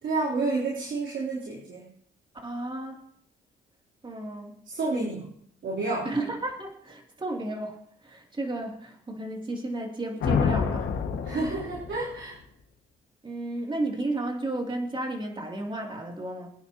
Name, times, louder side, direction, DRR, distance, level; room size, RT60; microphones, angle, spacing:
voice 1, 0.0-1.9 4.7-5.3 5.6-6.1 11.2-12.4, right 3 dB, 65° right, -6 dB, 3.5 m, -30 dB
voice 2, 2.4-3.0 4.0-4.5 6.0-10.9 13.2-16.5, right 2 dB, 25° right, 0 dB, 2.9 m, -33 dB
sound 1, 10.2-12.2, left 6 dB, 75° left, 1.9 m, -28 dB
25.0 x 9.7 x 3.0 m, 0.68 s
cardioid pair, 90°, 20 cm